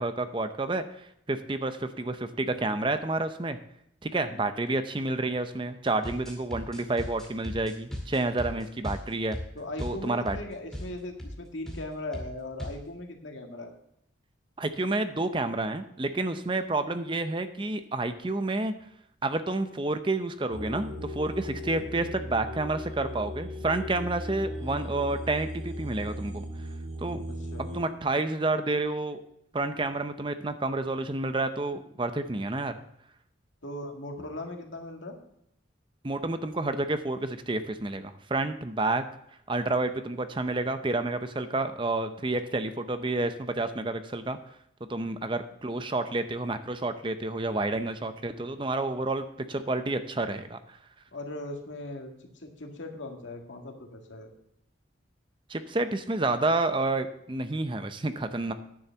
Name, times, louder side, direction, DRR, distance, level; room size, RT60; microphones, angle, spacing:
voice 1, 0.0-3.6 4.0-9.4 9.8-10.4 14.6-18.7 19.2-26.4 27.0-27.2 27.6-29.2 29.5-32.8 36.0-39.0 39.5-44.4 44.9-50.8 55.5-58.5, right 2 dB, 25° right, 9 dB, 0.6 m, -29 dB
sound 1, 5.9-10.4 10.7-10.9 11.2-11.4 11.7-11.9 12.1-12.8, equal, 5° left, 2.2 m, -37 dB
voice 2, 9.5-13.7 27.3-27.7 33.6-35.2 51.1-54.3, left 1 dB, 85° left, 2 dB, 1.9 m, -39 dB
sound 2, 20.5-27.8, equal, 70° right, 5.6 m, -37 dB
10.5 x 7.1 x 7.0 m, 0.75 s
head